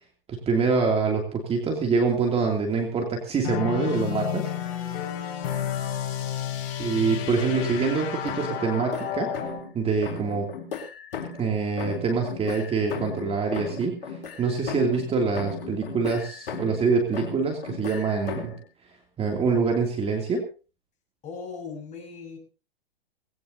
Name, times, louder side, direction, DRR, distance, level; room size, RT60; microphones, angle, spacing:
voice 1, 0.3-4.5 6.8-9.3 9.7-10.5 11.4-18.5 19.2-20.4, right 4 dB, 20° right, 2 dB, 2.7 m, -25 dB
sound 1, 3.4-9.6, left 10 dB, 40° left, 5.4 m, -31 dB
voice 2, 7.3-7.7 21.2-22.4, left 5 dB, 25° left, 2 dB, 6.5 m, -38 dB
sound 2, 8.2-9.7 10.0-11.5 11.8-15.1 15.3-16.9 17.1-18.6, left 6 dB, 65° left, 4.3 m, -36 dB
20.5 x 17.0 x 2.8 m, 0.35 s
hypercardioid pair, 115°, 30 cm